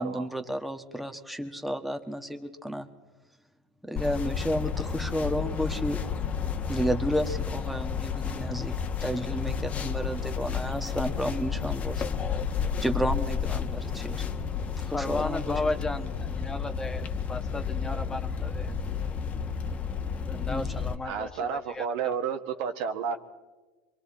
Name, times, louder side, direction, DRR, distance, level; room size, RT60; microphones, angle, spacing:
voice 1, 0.0-2.9 3.8-6.0 6.7-8.7 9.0-12.0 12.8-14.2 14.9-15.5 20.5-20.8, equal, ahead, 5 dB, 1.5 m, -31 dB
sound 1, 4.0-20.9, left 6 dB, 30° left, 1.4 m, -31 dB
voice 2, 14.9-18.7 20.3-21.3 21.7-22.2, left 2 dB, 15° left, 7 dB, 1.3 m, -34 dB
voice 3, 21.0-23.2, right 6 dB, 65° right, 7 dB, 1.6 m, -31 dB
26.5 x 23.5 x 4.3 m, 1.3 s
hypercardioid pair, 100°, 4 cm